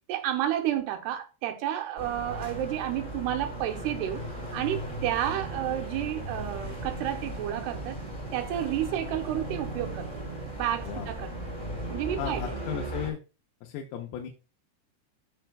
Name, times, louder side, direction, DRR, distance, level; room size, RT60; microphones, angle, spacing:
voice 1, 0.1-4.2 4.5-8.0 8.3-11.5 11.9-12.6, right 12 dB, 80° right, 2.9 m, -31 dB
sound 1, 2.0-13.1, right 1 dB, 15° left, 2.7 m, -37 dB
voice 2, 12.2-13.2 13.6-14.3, left 9 dB, 80° left, 2.7 m, -35 dB
13.5 x 4.9 x 2.2 m
omnidirectional pair, 4.8 m